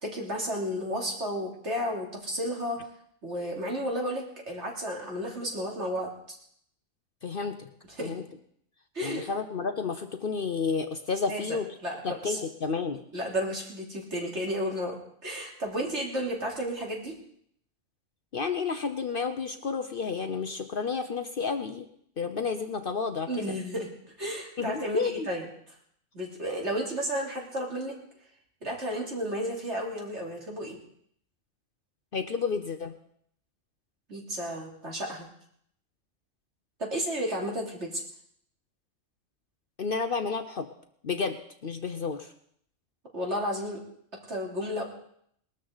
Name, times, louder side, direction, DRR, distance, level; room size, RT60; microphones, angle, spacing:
voice 1, 0.0-2.8 3.2-6.1 8.0-8.1 8.9-9.3 11.3-12.4 13.1-15.0 15.2-17.1 23.3-23.9 24.2-25.4 26.1-28.0 28.6-30.8 34.1-35.3 36.8-38.0 43.1-43.8 44.3-44.8, equal, 60° right, -1 dB, 3.4 m, -32 dB
voice 2, 7.2-7.7 8.0-8.2 9.0-11.7 12.0-13.0 18.3-21.9 22.2-23.6 24.6-25.3 32.1-32.9 39.8-40.7 41.0-42.3, left 5 dB, 50° left, 8 dB, 0.9 m, -31 dB
20.0 x 13.0 x 4.0 m, 0.67 s
omnidirectional pair, 1.4 m